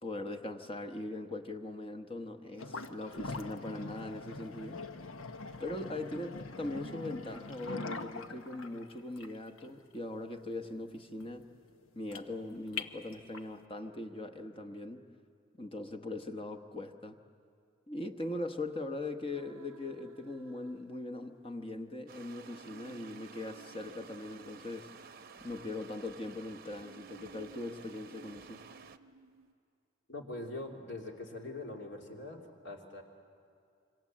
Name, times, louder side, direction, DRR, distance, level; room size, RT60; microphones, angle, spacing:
voice 1, 0.0-4.8 5.6-11.5 11.9-15.0 15.6-17.2 17.9-24.9 25.4-28.6, left 2 dB, 25° left, 5 dB, 1.0 m, -40 dB
sound 1, 2.6-13.6, left 3 dB, 85° left, 1.1 m, -43 dB
sound 2, 19.3-21.5 22.3-26.0 26.8-29.5, right 6 dB, 85° right, 0.6 m, -58 dB
sound 3, 22.1-29.0, right 5 dB, 45° right, 0.8 m, -53 dB
voice 2, 30.1-33.0, left 2 dB, 60° left, 1 dB, 3.0 m, -43 dB
26.5 x 25.5 x 7.5 m, 2.4 s
head